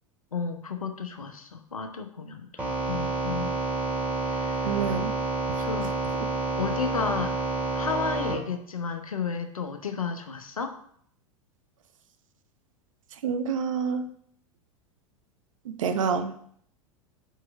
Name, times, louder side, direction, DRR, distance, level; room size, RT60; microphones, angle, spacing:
voice 1, 0.3-2.6 2.9-3.5 4.3-4.9 5.6-5.9 6.6-7.3 7.7-10.8, left 5 dB, 85° left, 7 dB, 0.9 m, -32 dB
sound 1, 2.6-8.4, right 2 dB, 10° right, 2.5 m, -29 dB
voice 2, 4.6-5.1 13.2-14.1 15.7-16.3, right 6 dB, 70° right, 9 dB, 0.8 m, -27 dB
5.0 x 4.6 x 5.9 m, 0.64 s
figure-of-eight pair, 90°, 17 cm